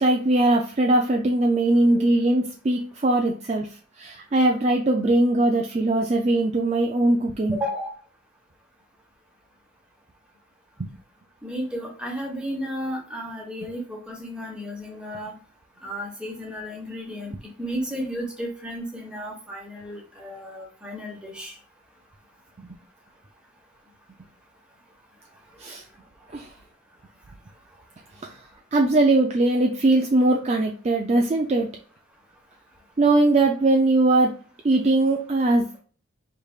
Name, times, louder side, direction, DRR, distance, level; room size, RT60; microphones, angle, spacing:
voice 1, 0.0-3.7 4.0-7.6 22.6-22.7 25.6-25.8 26.3-26.5 28.2-28.3 28.7-31.7 33.0-34.3 34.6-35.7, right 2 dB, 30° right, 1 dB, 0.4 m, -20 dB
voice 2, 7.5-7.9 11.4-15.3 15.8-17.3 17.6-21.6, equal, 5° right, -1 dB, 1.2 m, -33 dB
4.8 x 3.3 x 2.4 m, 0.41 s
head